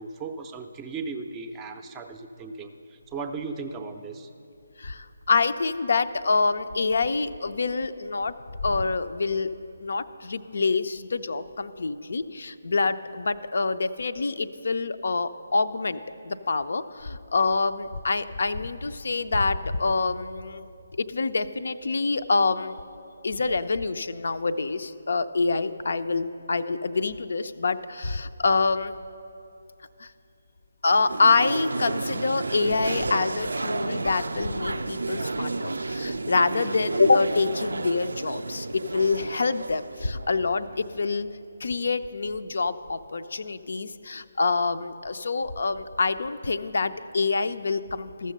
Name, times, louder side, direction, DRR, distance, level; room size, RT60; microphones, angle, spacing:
voice 1, 0.0-4.3, right 4 dB, 15° right, 7 dB, 0.5 m, -36 dB
voice 2, 4.8-8.3 8.6-9.5 9.8-20.7 21.0-22.8 23.2-29.0 30.0-30.1 30.8-41.3 41.6-48.3, left 4 dB, 60° left, 11 dB, 0.4 m, -26 dB
sound 1, 30.9-40.9, right 3 dB, 70° right, 0.4 m, -32 dB
13.5 x 6.4 x 6.6 m, 2.7 s
figure-of-eight pair, 145°, 0 cm